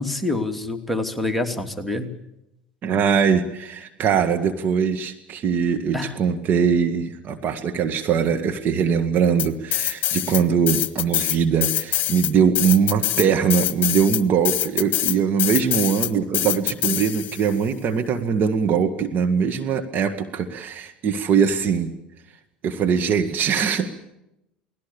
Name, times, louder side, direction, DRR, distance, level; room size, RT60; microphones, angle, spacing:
voice 1, 0.0-2.1 5.9-6.1, left 2 dB, ahead, 7 dB, 3.0 m, -26 dB
voice 2, 2.8-21.9 22.6-23.9, right 6 dB, 40° right, 5 dB, 2.1 m, -21 dB
sound 1, 9.4-10.4 10.7-17.5, left 13 dB, 45° left, 1.5 m, -24 dB
29.0 x 19.5 x 7.2 m, 0.86 s
figure-of-eight pair, 70°, 5 cm